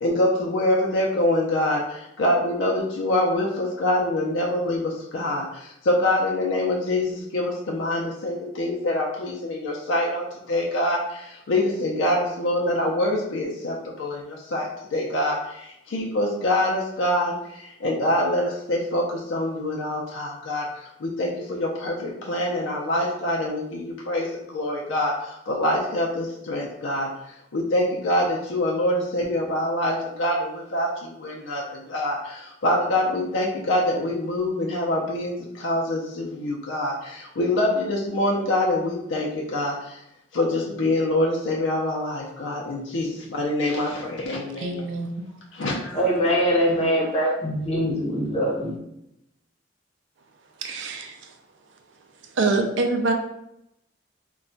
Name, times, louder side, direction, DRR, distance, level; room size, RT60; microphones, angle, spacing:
voice 1, 0.0-27.1 27.5-40.0 40.3-44.9 45.5-46.0, left 1 dB, 80° left, -2 dB, 0.5 m, -25 dB
voice 2, 44.6-45.3 50.6-51.3 52.3-53.1, right 3 dB, 70° right, 4 dB, 0.4 m, -25 dB
voice 3, 45.9-48.7, equal, 35° left, -3 dB, 0.6 m, -23 dB
2.2 x 2.1 x 3.8 m, 0.82 s
head